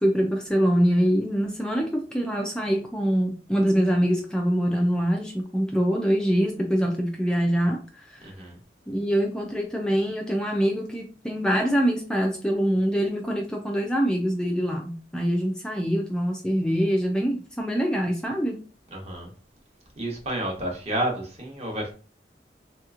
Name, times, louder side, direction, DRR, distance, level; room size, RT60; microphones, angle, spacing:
voice 1, 0.0-8.3 8.9-18.6, equal, 5° left, 1 dB, 0.3 m, -24 dB
voice 2, 8.2-8.6 18.9-19.3 20.0-21.9, right 1 dB, 35° right, 1 dB, 1.0 m, -30 dB
3.2 x 2.9 x 2.4 m, 0.37 s
head